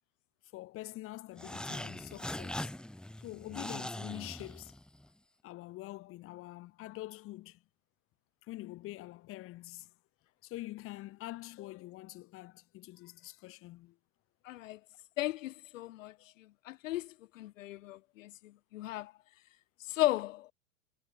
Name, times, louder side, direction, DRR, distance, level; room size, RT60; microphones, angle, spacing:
voice 1, 0.5-2.7 3.2-4.7 5.4-7.6 8.5-9.9 10.4-14.0, left 17 dB, 35° left, 1.5 m, -45 dB
sound 1, 1.4-5.1, left 1 dB, ahead, 2.4 m, -41 dB
voice 2, 14.4-14.8 15.2-19.1 19.8-20.5, left 16 dB, 75° left, 3.3 m, -36 dB
supercardioid pair, 140°, 39 cm